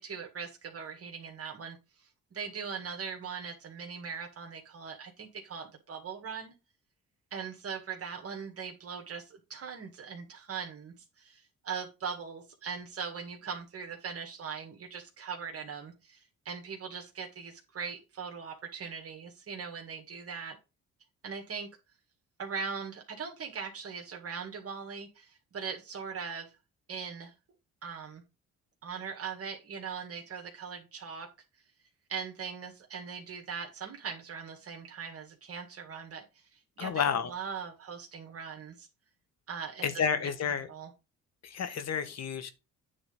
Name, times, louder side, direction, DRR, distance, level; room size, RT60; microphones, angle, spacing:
voice 1, 0.0-6.5 7.3-20.6 21.2-21.7 22.4-26.5 26.9-27.3 27.8-28.2 28.8-31.3 32.1-38.9 39.5-40.9, right 6 dB, 50° right, 1.8 m, -40 dB
voice 2, 36.8-37.3 39.8-40.7 41.4-42.5, left 7 dB, 60° left, 1.5 m, -30 dB
8.8 x 3.9 x 5.3 m
cardioid pair, 90°, 30 cm